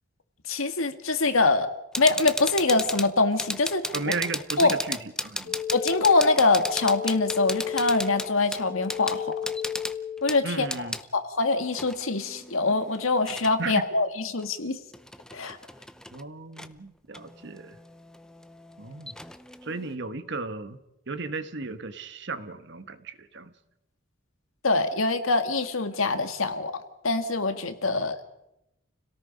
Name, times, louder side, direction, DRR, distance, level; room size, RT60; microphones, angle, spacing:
voice 1, 0.5-1.7 2.0-3.9 4.6-4.8 5.7-9.3 10.2-10.7 11.1-14.8 15.3-15.6 24.6-26.8 27.0-28.2, left 3 dB, 90° left, 7 dB, 1.9 m, -24 dB
sound 1, 1.9-11.0 11.7-13.5 14.4-14.5 14.9-16.2 16.6-16.7 17.1-20.0, left 1 dB, 5° left, 0.6 m, -35 dB
voice 2, 3.9-5.6 10.4-11.0 13.6-13.9 16.1-17.8 18.8-19.2 19.6-20.8 21.1-23.5 27.9-28.0, right 3 dB, 60° right, 10 dB, 1.4 m, -35 dB
sound 2, 5.5-10.5, left 9 dB, 50° left, 1.5 m, -34 dB
29.5 x 18.0 x 5.2 m, 0.86 s
head